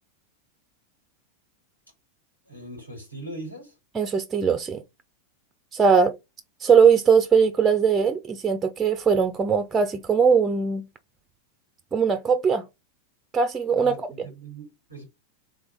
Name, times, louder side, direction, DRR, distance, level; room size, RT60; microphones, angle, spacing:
voice 1, 2.4-3.7 13.8-15.0, right 2 dB, 85° left, 2.7 m, -40 dB
voice 2, 3.9-4.8 5.7-6.1 6.6-10.8 11.9-12.6 13.3-14.0, right 6 dB, 15° right, 0.5 m, -20 dB
3.5 x 3.4 x 3.9 m
figure-of-eight pair, 90°, 0 cm